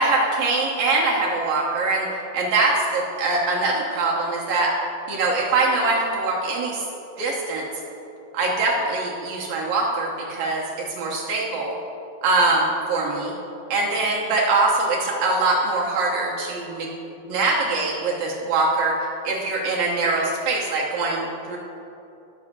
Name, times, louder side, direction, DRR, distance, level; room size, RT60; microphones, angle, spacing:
voice 1, 0.0-2.1 2.3-4.7 5.1-6.9 7.2-7.7 8.3-10.6 11.0-11.7 12.2-13.3 13.7-16.9 17.3-19.0 19.2-21.6, right 3 dB, 70° right, -3 dB, 2.6 m, -23 dB
12.0 x 4.8 x 6.6 m, 2.8 s
omnidirectional pair, 4.6 m